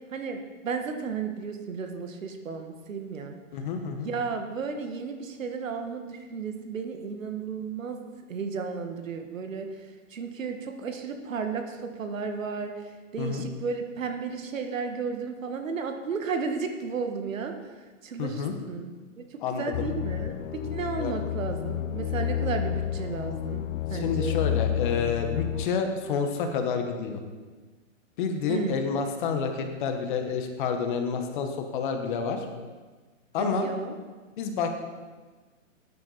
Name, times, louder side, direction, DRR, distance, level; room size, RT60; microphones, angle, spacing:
voice 1, 0.1-3.4 4.0-8.0 8.3-17.6 18.0-18.9 19.2-24.4 28.5-28.8 33.4-33.9, right 5 dB, 75° right, 5 dB, 1.7 m, -33 dB
voice 2, 3.5-4.1 13.2-13.5 18.2-18.5 19.4-19.9 21.0-21.1 23.9-27.2 28.2-32.5 33.3-33.7 34.4-34.7, left 6 dB, 40° left, 5 dB, 1.4 m, -29 dB
sound 1, 19.7-25.7, left 10 dB, 70° left, 0.5 m, -30 dB
13.5 x 9.6 x 4.2 m, 1.4 s
hypercardioid pair, 145°, 40 cm